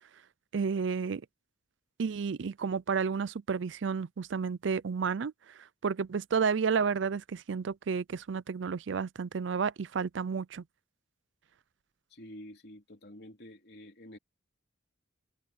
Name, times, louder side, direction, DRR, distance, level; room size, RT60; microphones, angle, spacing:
voice 1, 0.5-1.2 2.0-5.3 5.8-10.6, right 5 dB, 65° right, 0.4 m, -31 dB
voice 2, 12.1-14.2, equal, 55° left, 3.7 m, -49 dB
open air
head